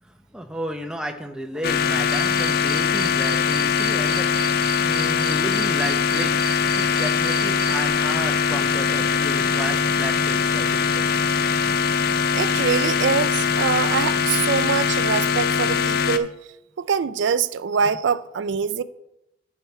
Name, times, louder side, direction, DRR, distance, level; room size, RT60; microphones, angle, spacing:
voice 1, 0.0-11.1, equal, 5° right, 0.7 m, -33 dB
sound 1, 1.6-16.2, left 6 dB, 50° left, 0.5 m, -22 dB
Cricket, 2.1-7.7, right 6 dB, 25° right, 2.1 m, -33 dB
voice 2, 12.3-16.3 16.8-18.8, right 6 dB, 75° right, 0.4 m, -24 dB
10.5 x 5.9 x 4.3 m
head